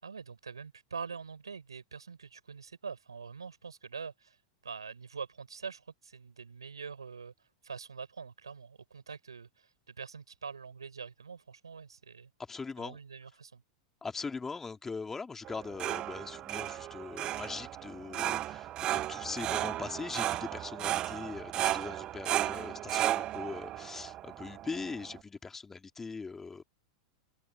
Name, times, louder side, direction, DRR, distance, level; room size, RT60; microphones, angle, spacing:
voice 1, 0.0-4.4 4.6-7.3 7.6-12.3 12.8-13.6, right 5 dB, 75° right, 5.7 m, -44 dB
voice 2, 12.5-13.0 14.0-26.6, left 4 dB, 15° left, 3.3 m, -41 dB
sound 1, 15.4-25.2, right 13 dB, 30° right, 0.5 m, -35 dB
open air
figure-of-eight pair, 90°, 3 cm